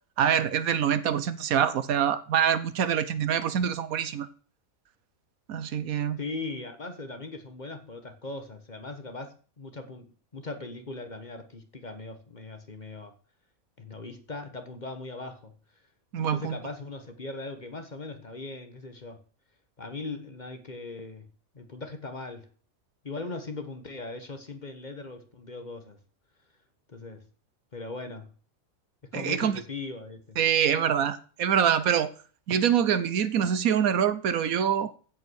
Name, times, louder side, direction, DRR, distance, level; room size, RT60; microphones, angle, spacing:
voice 1, 0.2-4.3 5.5-6.2 16.1-16.6 29.1-29.6 30.4-32.1 32.5-34.9, right 8 dB, 80° right, 1.3 m, -25 dB
voice 2, 6.2-10.1 10.3-13.1 13.8-15.5 16.2-19.2 19.8-21.3 21.5-22.5 23.0-26.0 26.9-27.3 27.7-28.3 29.0-30.4, left 3 dB, 35° left, 1.4 m, -39 dB
15.5 x 5.5 x 6.4 m
omnidirectional pair, 1.5 m